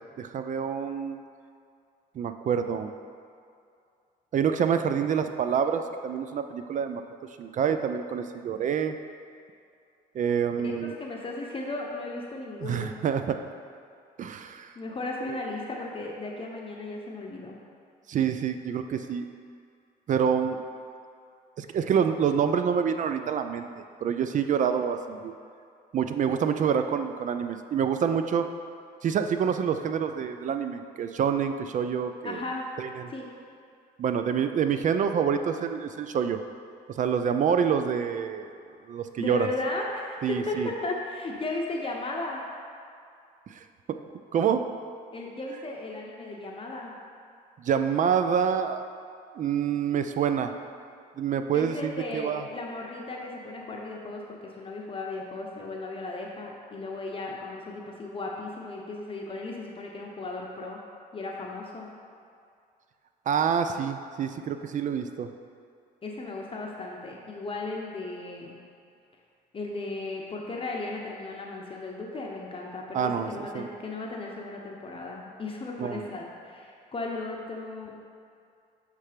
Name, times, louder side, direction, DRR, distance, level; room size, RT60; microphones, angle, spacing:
voice 1, 0.2-1.2 2.2-2.9 4.3-7.0 7.4-8.9 10.1-10.9 12.6-13.4 14.2-14.7 18.1-19.3 20.1-20.6 21.6-23.7 24.0-25.3 25.9-28.5 29.0-32.4 32.8-33.1 34.0-36.4 36.9-38.5 38.9-39.5 40.2-40.7 43.5-44.0 44.3-44.7 47.6-48.8 49.4-50.5 51.2-52.4 63.3-65.3 72.9-73.7 75.8-76.0, right 7 dB, 50° right, 8 dB, 0.4 m, -27 dB
voice 2, 10.6-13.0 14.8-17.6 32.2-32.7 33.1-33.3 39.2-42.4 45.1-46.9 51.5-60.8 61.1-61.9 66.0-68.6 69.5-78.0, left 2 dB, 30° left, -1 dB, 0.8 m, -35 dB
6.6 x 3.3 x 5.0 m, 2.4 s
cardioid pair, 85°, 17 cm